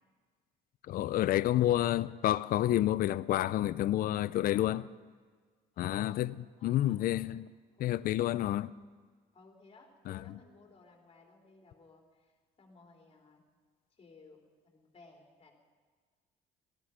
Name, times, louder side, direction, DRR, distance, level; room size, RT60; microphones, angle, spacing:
voice 1, 0.9-4.8 5.8-6.3 6.6-7.4 7.8-8.7 10.1-10.2, left 13 dB, 60° left, 0.5 m, -29 dB
voice 2, 1.6-2.0 4.4-4.7 5.7-6.2 6.6-7.2 7.7-7.9 9.3-13.4 14.0-15.5, left 3 dB, 35° left, 3.4 m, -58 dB
18.5 x 14.0 x 5.0 m
cardioid pair, 110°, 17 cm